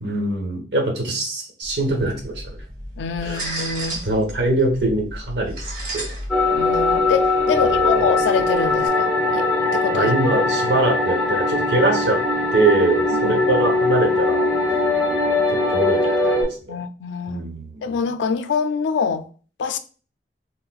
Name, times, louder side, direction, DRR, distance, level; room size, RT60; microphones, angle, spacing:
voice 1, 0.0-2.6 3.2-3.4 4.0-6.2 7.6-8.0 9.9-12.2 12.5-14.5 15.5-16.8 17.3-17.8, right 2 dB, 75° right, 1.0 m, -23 dB
sound 1, 1.6-8.9, right 1 dB, 45° right, 0.9 m, -34 dB
voice 2, 3.0-4.0 6.5-9.5 9.7-10.1 13.1-13.4 16.7-17.4 17.8-19.3 19.6-19.8, left 5 dB, 85° left, 0.3 m, -25 dB
sound 2, 6.3-16.4, left 2 dB, ahead, 0.9 m, -20 dB
4.1 x 2.1 x 2.3 m
head